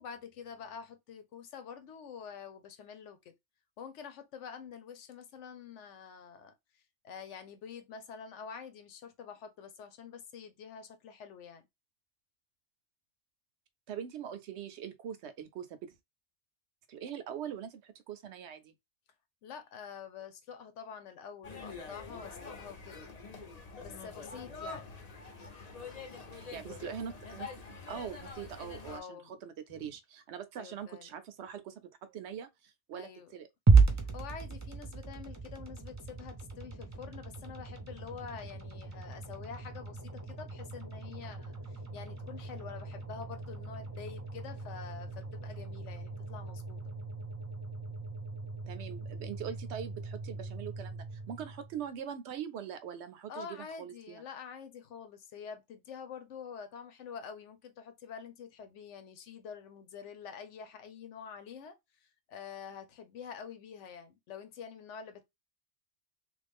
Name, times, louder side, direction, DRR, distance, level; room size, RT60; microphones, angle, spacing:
voice 1, 0.0-3.3 3.8-11.7 19.4-23.1 23.8-24.9 28.9-29.4 29.7-29.9 30.6-31.1 32.9-33.3 34.0-46.8 53.3-65.2, left 6 dB, 90° left, 1.0 m, -47 dB
voice 2, 13.9-15.8 16.9-18.7 26.3-33.5 48.7-54.2, right 8 dB, 75° right, 0.9 m, -43 dB
sound 1, 21.4-29.0, left 4 dB, 40° left, 0.7 m, -45 dB
sound 2, 33.7-51.9, right 4 dB, 20° right, 0.5 m, -34 dB
3.1 x 2.5 x 3.4 m
omnidirectional pair, 1.2 m